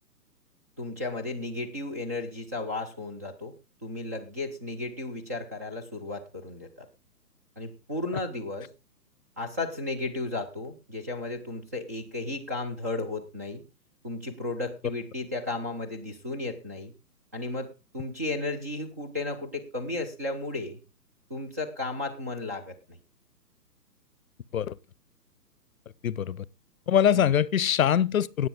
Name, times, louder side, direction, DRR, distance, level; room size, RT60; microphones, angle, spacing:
voice 1, 0.8-3.5 3.8-6.9 7.6-8.7 9.4-13.6 14.0-16.9 17.3-20.8 21.3-22.8 27.1-27.3, left 2 dB, 10° right, 0.5 m, -34 dB
voice 2, 26.0-26.4 26.9-28.5, left 9 dB, 55° left, 0.8 m, -23 dB
18.0 x 8.0 x 3.7 m
figure-of-eight pair, 135°, 49 cm